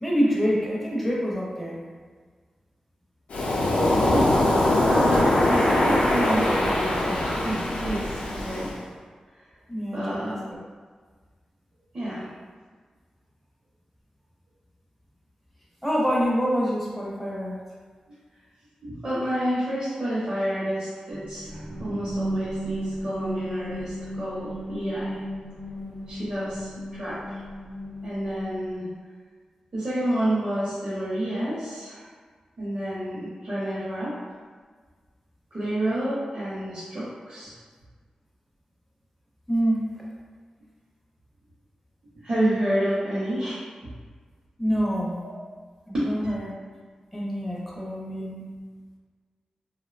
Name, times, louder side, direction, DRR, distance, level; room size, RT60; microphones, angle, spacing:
voice 1, 0.0-1.8 9.7-10.4 15.8-17.6 39.5-40.0 44.6-45.2 45.9-46.5 47.1-48.5, equal, ahead, -5 dB, 0.4 m, -26 dB
Waves surf, 3.3-8.8, left 1 dB, 85° left, 0.4 m, -22 dB
voice 2, 4.5-8.7 9.9-10.4 11.9-12.3 18.8-25.2 26.1-27.4 28.0-28.9 29.7-32.1 32.6-34.1 35.5-37.5 42.1-43.6 45.9-46.0, right 1 dB, 45° right, -11 dB, 0.6 m, -29 dB
sound 1, 21.1-28.9, equal, 80° right, 0.7 m, -35 dB
2.7 x 2.0 x 2.4 m, 1.5 s
wide cardioid pair, 155°, 2 cm